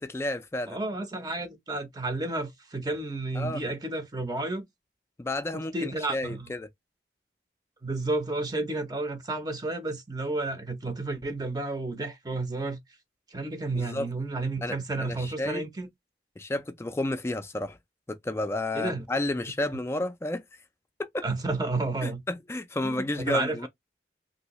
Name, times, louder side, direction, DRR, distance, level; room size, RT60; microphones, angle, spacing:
voice 1, 0.0-0.8 3.3-3.6 5.2-6.7 13.7-14.1 14.6-15.6 16.4-17.8 18.1-20.4 21.0-21.2 22.0-23.7, left 2 dB, 15° left, 0.3 m, -31 dB
voice 2, 0.7-4.6 5.7-6.5 7.8-12.8 13.3-15.9 18.7-19.0 21.2-22.2 22.8-23.7, right 2 dB, 20° right, 0.6 m, -31 dB
3.1 x 2.6 x 2.9 m
head